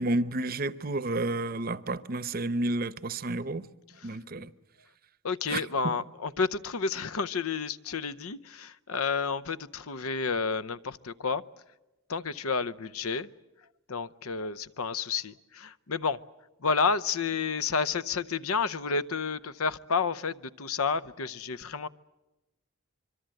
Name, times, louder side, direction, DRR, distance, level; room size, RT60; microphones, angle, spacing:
voice 1, 0.0-3.7 4.0-4.5 5.5-5.6, right 2 dB, 45° right, 0.8 m, -30 dB
voice 2, 5.2-11.4 12.1-13.3 13.9-16.2 16.6-21.9, left 5 dB, 85° left, 0.8 m, -30 dB
25.0 x 24.0 x 7.8 m
head